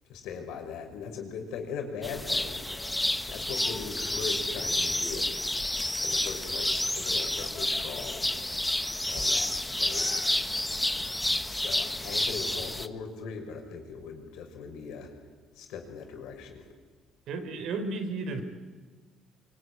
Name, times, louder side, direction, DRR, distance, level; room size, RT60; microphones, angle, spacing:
voice 1, 0.1-2.7 3.3-5.3 6.0-8.3 9.1-9.5 9.8-10.4 11.5-15.1 15.5-16.7, left 6 dB, 80° left, 4 dB, 5.9 m, -39 dB
sound 1, 2.0-12.9, left 1 dB, 10° left, 1.1 m, -30 dB
voice 2, 17.3-18.4, right 3 dB, 65° right, 8 dB, 3.9 m, -33 dB
24.5 x 24.0 x 9.8 m, 1.4 s
cardioid pair, 115°, 0 cm